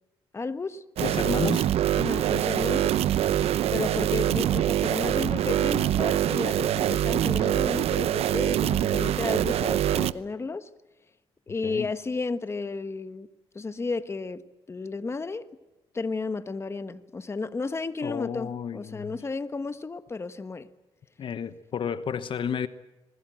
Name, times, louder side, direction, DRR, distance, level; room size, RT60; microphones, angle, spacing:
voice 1, 0.3-0.8 1.9-3.0 3.7-10.7 11.5-13.3 13.5-14.4 14.7-15.5 15.9-20.7, left 3 dB, 25° left, 1.3 m, -33 dB
voice 2, 1.0-1.7 11.6-11.9 18.0-19.2 21.2-22.7, left 7 dB, 55° left, 1.1 m, -31 dB
sound 1, 1.0-10.1, right 11 dB, 75° right, 0.8 m, -24 dB
27.0 x 21.5 x 7.7 m
cardioid pair, 95°, 10 cm